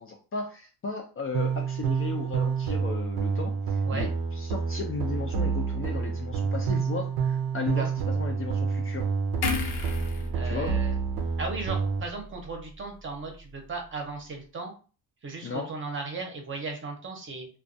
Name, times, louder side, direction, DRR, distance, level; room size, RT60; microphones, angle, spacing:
voice 1, 0.0-9.0 10.4-10.8 15.4-15.7, left 4 dB, 35° left, 2 dB, 0.4 m, -35 dB
sound 1, 1.3-12.0, right 5 dB, 80° right, 0.5 m, -28 dB
sound 2, 9.4-12.8 13.1-13.3, left 3 dB, 75° left, 0.7 m, -35 dB
voice 2, 10.3-10.9 11.4-14.7 15.2-17.5, right 3 dB, 35° right, 3 dB, 0.7 m, -36 dB
2.2 x 2.2 x 2.5 m, 0.36 s
cardioid pair, 140°, 38 cm